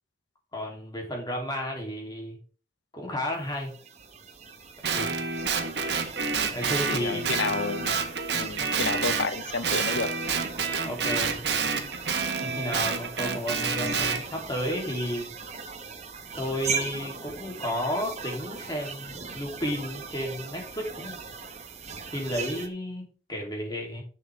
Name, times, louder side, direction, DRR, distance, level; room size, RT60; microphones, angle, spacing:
voice 1, 0.5-2.4 2.9-3.7 4.9-5.2 6.5-7.5 8.6-8.7 10.8-11.4 12.4-15.3 16.4-21.2 22.1-24.0, equal, 25° left, 0 dB, 3.5 m, -32 dB
sound 1, 3.5-22.7, right 5 dB, 40° right, 1.3 m, -39 dB
Guitar, 4.8-9.3 9.6-14.2, right 5 dB, 65° right, 1.5 m, -28 dB
voice 2, 6.9-7.9 8.3-10.1, left 4 dB, 75° left, 14 dB, 0.7 m, -30 dB
11.0 x 7.1 x 3.7 m, 0.39 s
head